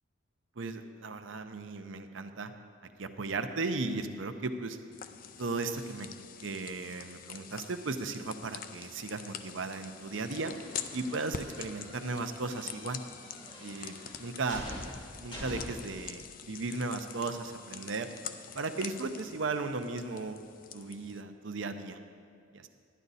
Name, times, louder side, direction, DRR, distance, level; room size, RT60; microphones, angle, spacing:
voice 1, 0.6-2.5 3.0-4.8 5.4-6.1 6.4-10.5 10.9-13.0 13.6-14.7 15.2-18.1 18.5-20.4 20.7-22.0 22.5-22.7, right 3 dB, 85° right, 8 dB, 0.7 m, -36 dB
sound 1, 4.9-21.2, left 8 dB, 45° left, 0.4 m, -45 dB
sound 2, 10.1-16.0, equal, 30° left, 2.6 m, -46 dB
11.0 x 10.5 x 4.1 m, 2.4 s
head